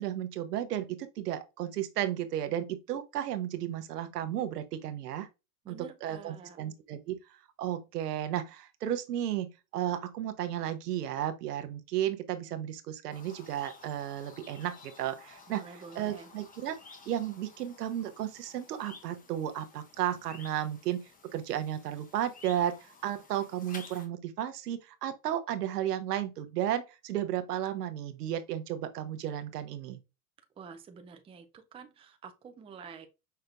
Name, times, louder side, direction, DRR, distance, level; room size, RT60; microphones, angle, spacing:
voice 1, 0.0-5.3 5.7-15.6 16.0-16.8 17.1-30.0, right 11 dB, 90° right, 0.9 m, -34 dB
voice 2, 5.6-6.6 15.5-16.3 30.6-33.1, right 5 dB, 15° right, 0.5 m, -48 dB
sound 1, 13.1-24.1, left 4 dB, 20° left, 0.9 m, -53 dB
5.7 x 3.3 x 2.4 m
hypercardioid pair, 115°, 46 cm